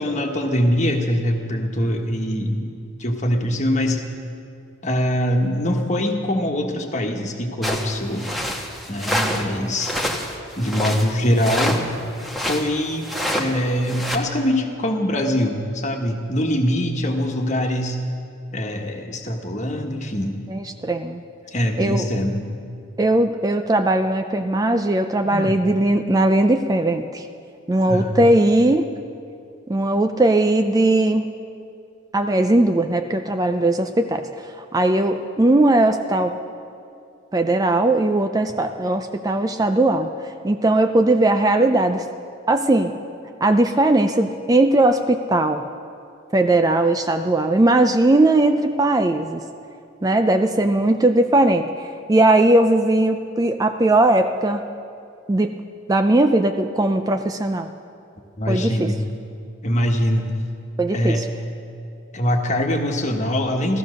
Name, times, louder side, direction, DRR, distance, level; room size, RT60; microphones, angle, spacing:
voice 1, 0.0-2.7 3.0-4.0 4.8-8.3 8.9-9.9 10.6-11.8 12.4-18.0 18.5-20.4 21.5-22.5 25.3-25.5 27.8-28.2 58.4-59.0 59.6-60.3 60.9-61.3 62.1-63.8, equal, 35° left, 3 dB, 1.4 m, -23 dB
sound 1, 7.6-9.5 9.8-12.7 13.0-13.5 13.9-14.2, equal, ahead, 1.2 m, -26 dB
voice 2, 20.5-21.2 21.8-22.1 23.0-27.3 27.7-28.9 29.7-31.3 32.1-36.3 37.3-40.1 40.4-42.1 42.5-42.9 43.4-45.6 46.3-49.4 50.0-54.6 55.3-55.5 55.9-57.7 58.5-58.9 60.8-61.3, right 2 dB, 20° right, 7 dB, 0.4 m, -19 dB
15.0 x 14.5 x 6.4 m, 2.5 s
head